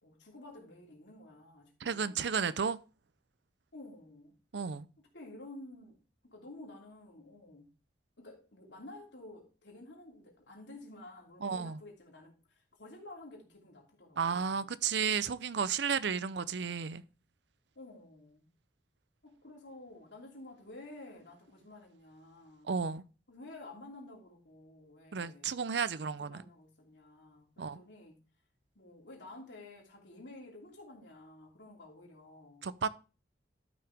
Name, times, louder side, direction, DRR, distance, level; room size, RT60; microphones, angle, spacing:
voice 1, 0.0-2.3 3.7-4.4 5.1-7.7 8.2-14.7 17.7-18.5 19.2-22.7 23.3-25.6 26.2-28.2 28.7-32.7, left 2 dB, 75° left, 2.9 m, -52 dB
voice 2, 1.8-2.8 4.5-4.9 11.4-11.8 14.2-17.0 22.6-23.0 25.1-26.4 27.6-27.8 32.6-32.9, right 6 dB, 65° right, 0.5 m, -33 dB
12.5 x 5.8 x 3.4 m
head